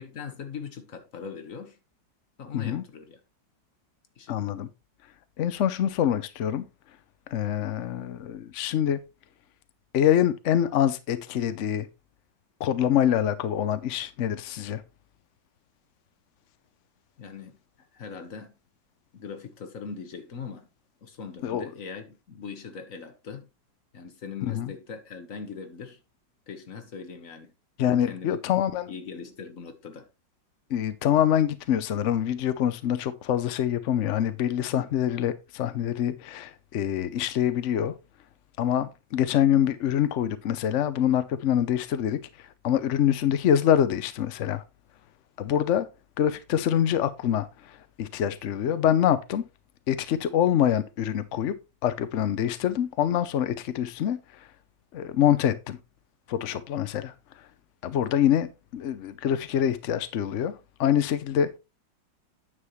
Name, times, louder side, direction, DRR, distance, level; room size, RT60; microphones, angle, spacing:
voice 1, 0.0-1.8 2.4-3.2 4.2-4.4 17.2-17.5 17.9-18.5 19.1-20.7 21.0-23.5 23.9-26.0 26.5-27.5 28.1-28.4 28.9-30.1, left 6 dB, 45° left, 1.6 m, -40 dB
voice 2, 4.3-4.7 5.4-6.6 7.3-9.0 9.9-11.9 12.6-14.8 21.4-21.6 24.4-24.7 27.8-28.9 30.7-37.9 38.6-44.6 45.4-45.9 46.2-49.4 49.9-51.5 51.8-54.5 54.9-55.8 56.3-57.1 57.8-61.6, left 10 dB, 70° left, 0.7 m, -25 dB
9.7 x 7.3 x 3.1 m
omnidirectional pair, 2.0 m